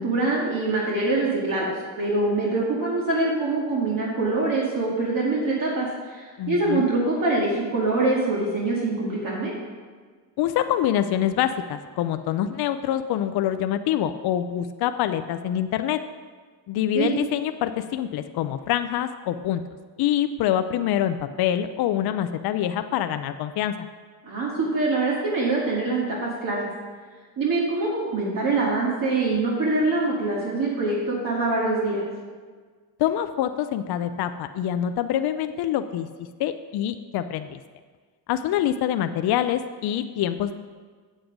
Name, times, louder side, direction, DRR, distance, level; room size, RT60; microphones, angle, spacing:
voice 1, 0.0-1.7 2.0-9.5 16.9-17.1 24.2-26.7 27.4-32.0, right 2 dB, 50° right, -5 dB, 2.1 m, -24 dB
voice 2, 6.4-6.9 10.4-16.0 16.7-19.6 20.0-23.9 33.0-36.1 36.4-37.6 38.3-40.5, left 11 dB, 65° left, 9 dB, 0.6 m, -25 dB
8.0 x 7.6 x 5.2 m, 1.5 s
cardioid pair, 90°, 43 cm